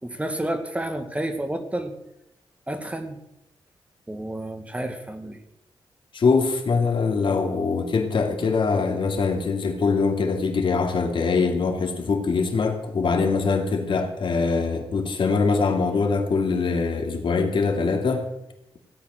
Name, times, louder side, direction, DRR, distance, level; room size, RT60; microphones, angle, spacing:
voice 1, 0.0-1.9 2.7-3.2 4.1-5.4, right 1 dB, 15° right, 1.9 m, -30 dB
voice 2, 6.1-18.3, left 4 dB, 60° left, 2.5 m, -23 dB
17.0 x 8.6 x 6.5 m
cardioid pair, 85°, 9 cm